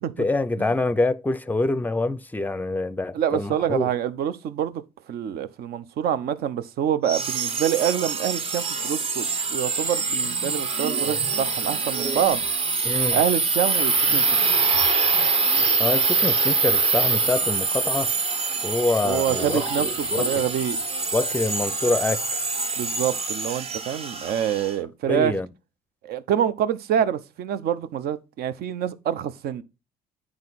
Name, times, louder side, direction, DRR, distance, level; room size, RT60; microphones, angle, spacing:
voice 1, 0.2-3.9 12.8-13.2 15.8-18.1 18.6-19.6 20.1-20.4 21.1-22.4 25.1-25.5, left 2 dB, 10° left, 0.5 m, -25 dB
voice 2, 3.1-4.8 5.1-12.4 13.1-14.4 19.0-20.8 22.8-25.4 26.0-29.6, right 9 dB, 65° right, 0.7 m, -26 dB
sound 1, 7.1-24.7, right 4 dB, 35° right, 1.0 m, -24 dB
9.6 x 4.8 x 4.0 m
cardioid pair, 110°, 17 cm